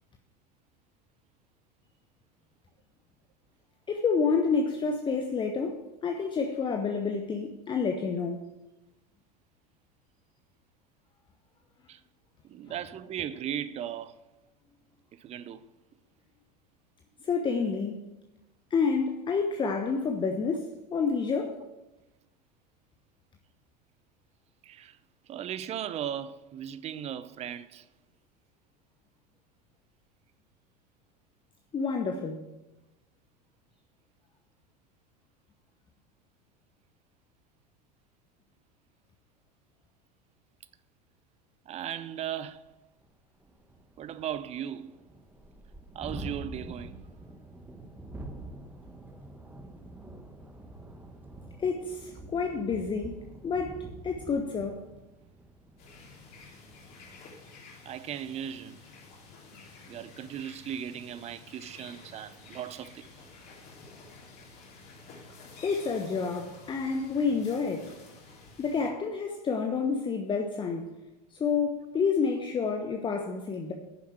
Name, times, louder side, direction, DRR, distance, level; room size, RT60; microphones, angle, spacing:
voice 1, 3.9-8.4 17.2-18.0 18.7-21.6 31.7-32.4 51.6-53.1 53.4-53.8 54.0-54.9 65.6-67.9 68.6-70.9 71.3-73.7, left 5 dB, 25° left, 1.0 m, -29 dB
voice 2, 12.4-14.1 15.1-15.6 19.6-19.7 24.6-25.0 25.3-27.9 41.7-42.6 44.0-45.0 45.9-47.0 57.8-58.8 59.9-63.1, right 10 dB, 30° right, 0.7 m, -37 dB
Thunderstorm, 43.0-43.1 43.4-57.0, right 1 dB, 10° right, 1.4 m, -46 dB
sound 1, 55.8-68.9, left 3 dB, 45° left, 3.5 m, -51 dB
10.0 x 7.2 x 7.4 m
figure-of-eight pair, 75°, 21 cm